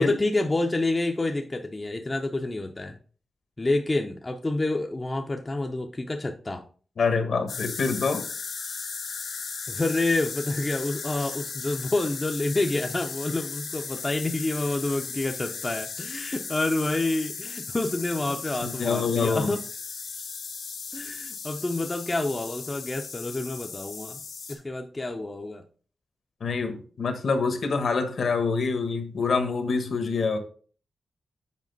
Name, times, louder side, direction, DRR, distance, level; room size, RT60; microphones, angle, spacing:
voice 1, 0.0-3.0 3.6-6.6 9.7-19.6 20.9-24.2 24.5-25.6, left 2 dB, 20° left, 3 dB, 0.6 m, -28 dB
voice 2, 7.0-8.3 18.6-19.5 26.4-30.4, left 4 dB, 60° left, 7 dB, 1.1 m, -26 dB
sound 1, 7.5-24.5, left 5 dB, 80° left, 1.6 m, -36 dB
7.4 x 5.1 x 3.9 m, 0.41 s
wide cardioid pair, 150°, 0 cm